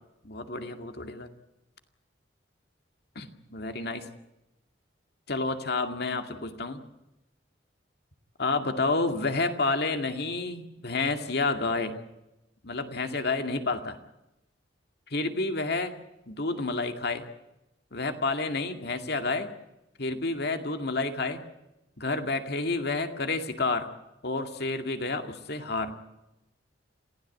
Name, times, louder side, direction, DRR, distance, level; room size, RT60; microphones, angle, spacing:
voice 1, 0.2-1.3 3.2-4.0 5.3-6.8 8.4-12.0 12.6-14.0 15.1-15.9 16.3-17.2 17.9-19.5 20.0-21.5 22.0-23.9 24.2-26.0, left 3 dB, 60° left, 6 dB, 2.2 m, -29 dB
27.5 x 16.0 x 8.4 m, 0.91 s
head